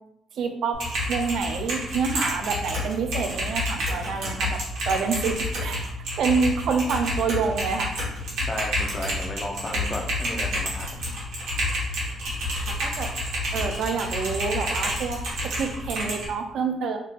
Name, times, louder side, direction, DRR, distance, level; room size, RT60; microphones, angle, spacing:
voice 1, 0.3-0.8 1.1-4.6 4.8-5.9 6.2-7.9 12.8-13.1 13.5-17.0, right 5 dB, 70° right, 5 dB, 0.4 m, -27 dB
Typing, 0.7-16.3, equal, 90° right, 1.2 m, -29 dB
voice 2, 8.4-11.1, left 1 dB, 25° left, 2 dB, 0.6 m, -34 dB
3.6 x 2.7 x 2.4 m, 0.76 s
cardioid pair, 90°, 0 cm